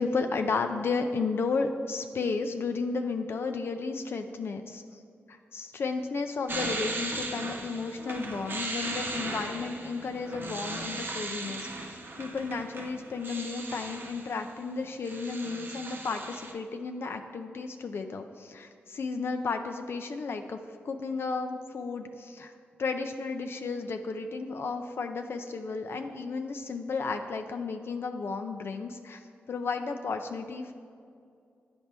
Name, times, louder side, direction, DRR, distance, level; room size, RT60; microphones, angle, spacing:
voice 1, 0.0-5.0 5.3-11.9 12.1-20.6 20.8-22.5 22.8-29.2 29.5-30.7, left 4 dB, 65° left, 6 dB, 0.4 m, -33 dB
sound 1, 6.5-14.5 14.8-16.5, right 2 dB, 50° right, 0.8 m, -37 dB
10.5 x 4.3 x 3.4 m, 2.4 s
cardioid pair, 65°, 4 cm